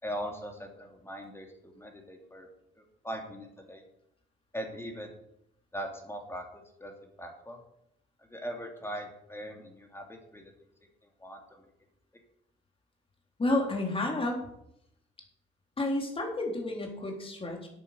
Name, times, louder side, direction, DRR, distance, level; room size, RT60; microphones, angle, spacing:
voice 1, 0.0-2.5 2.8-3.8 4.5-5.1 5.7-6.5 6.8-6.9 7.2-7.6 8.3-10.5 11.2-11.7, equal, 10° left, 3 dB, 2.7 m, -40 dB
voice 2, 13.4-14.5 15.8-17.7, left 2 dB, 25° left, 1 dB, 3.8 m, -30 dB
9.4 x 9.0 x 6.8 m, 0.76 s
cardioid pair, 90°, 20 cm